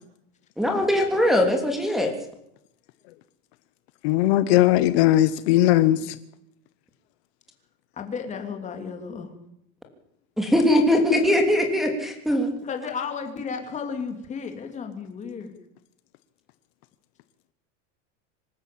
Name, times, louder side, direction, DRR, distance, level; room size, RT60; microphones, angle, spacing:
voice 1, 0.6-2.1 10.4-12.5, left 1 dB, ahead, 4 dB, 3.1 m, -21 dB
voice 2, 4.0-6.1, left 14 dB, 60° left, 13 dB, 1.1 m, -19 dB
voice 3, 8.0-9.3 12.6-15.5, left 6 dB, 20° left, 5 dB, 2.9 m, -33 dB
26.0 x 13.0 x 8.6 m, 0.79 s
supercardioid pair, 165°, 36 cm